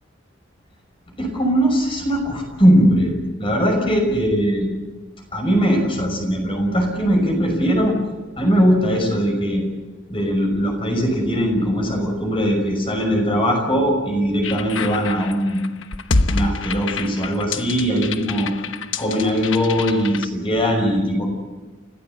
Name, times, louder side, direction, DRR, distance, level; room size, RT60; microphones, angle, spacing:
voice 1, 1.2-4.7 5.3-8.0 8.4-9.6 10.1-15.7 16.3-18.5 19.0-21.2, equal, 30° left, 2 dB, 5.8 m, -20 dB
sound 1, 14.4-20.2, left 3 dB, 85° left, 1.1 m, -26 dB
29.5 x 15.0 x 8.2 m, 1.2 s
head